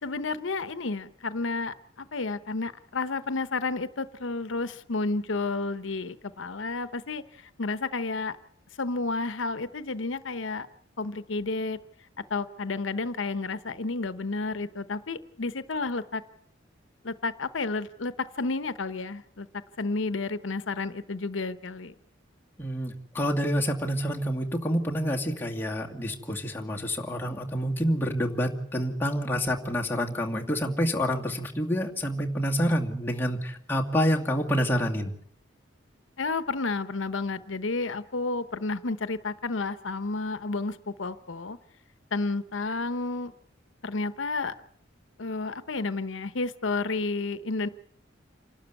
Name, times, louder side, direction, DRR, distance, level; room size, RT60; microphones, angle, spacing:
voice 1, 0.0-8.4 8.8-10.7 11.0-11.8 12.3-16.2 17.0-19.5 19.8-21.9 36.2-41.6 42.1-43.3 43.8-44.5 45.2-47.7, left 3 dB, 85° left, 0.9 m, -31 dB
voice 2, 22.6-35.1, equal, 10° left, 2.4 m, -28 dB
28.0 x 12.5 x 8.2 m
head